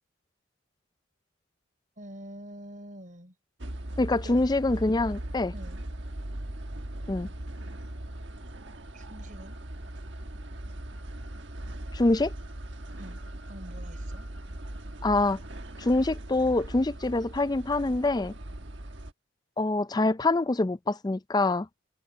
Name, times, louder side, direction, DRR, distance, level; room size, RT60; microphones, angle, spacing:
voice 1, 2.0-3.3 4.2-4.4 5.5-5.8 8.9-9.6 13.0-14.3, equal, 40° right, 5.4 m, -46 dB
sound 1, 3.6-19.1, right 1 dB, 60° right, 1.5 m, -39 dB
voice 2, 4.0-5.5 7.1-7.3 11.9-12.3 15.0-15.4 15.8-18.3 19.6-21.7, left 2 dB, 20° left, 0.4 m, -25 dB
head